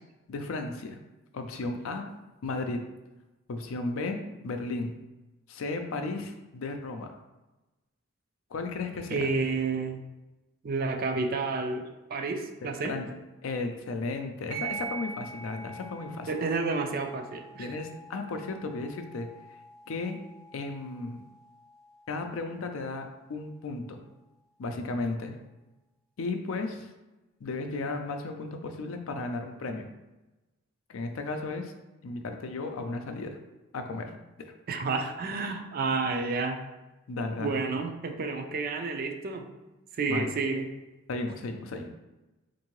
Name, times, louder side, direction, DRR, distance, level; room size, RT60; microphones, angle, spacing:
voice 1, 0.3-1.0 1.3-2.1 2.4-2.9 3.5-5.0 5.5-7.1 8.5-9.3 12.6-13.1 13.4-16.3 17.6-19.3 19.9-20.2 20.5-21.2 22.1-24.0 24.6-25.4 26.2-26.9 27.4-29.9 30.9-31.7 32.0-33.4 33.7-34.1 34.4-34.5 37.1-37.6 40.1-40.3 41.1-41.9, left 3 dB, 75° left, 5 dB, 0.4 m, -34 dB
voice 2, 9.1-10.0 10.6-12.9 16.3-17.7 34.7-36.6 37.4-39.4 39.9-40.7, right 4 dB, 45° right, 5 dB, 0.4 m, -30 dB
sound 1, 14.5-23.5, right 4 dB, 70° right, 0.7 m, -44 dB
3.6 x 2.6 x 3.0 m, 1.1 s
head